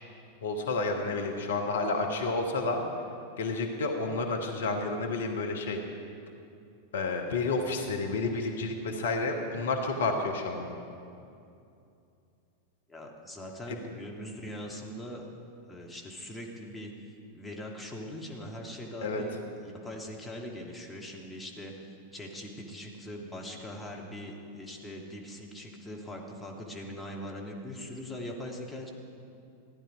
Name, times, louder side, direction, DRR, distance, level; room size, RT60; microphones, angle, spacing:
voice 1, 0.4-2.8 3.4-5.8 6.9-10.8 13.7-13.8 19.0-19.2, left 3 dB, 60° left, 3 dB, 1.1 m, -30 dB
voice 2, 12.9-15.3 15.7-16.9 17.3-21.7 22.1-28.9, left 1 dB, 5° left, -2 dB, 1.7 m, -41 dB
15.0 x 10.5 x 5.0 m, 2.6 s
figure-of-eight pair, 90°, 0 cm